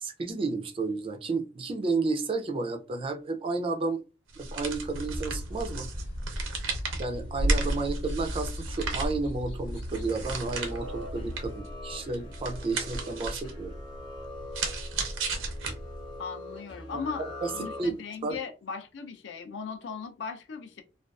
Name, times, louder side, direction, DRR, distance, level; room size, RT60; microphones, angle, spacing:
voice 1, 0.0-4.0 4.4-5.9 7.0-13.7 17.2-17.5 17.8-18.0 18.2-18.4, right 3 dB, 30° right, 0.3 m, -32 dB
sound 1, 4.3-16.2, right 2 dB, 90° right, 0.6 m, -34 dB
sound 2, 4.9-11.6, left 1 dB, 85° left, 0.9 m, -40 dB
sound 3, 10.1-18.3, left 1 dB, 25° left, 0.6 m, -43 dB
voice 2, 16.2-17.2 17.5-20.8, left 5 dB, 65° left, 0.4 m, -38 dB
2.4 x 2.3 x 2.3 m
head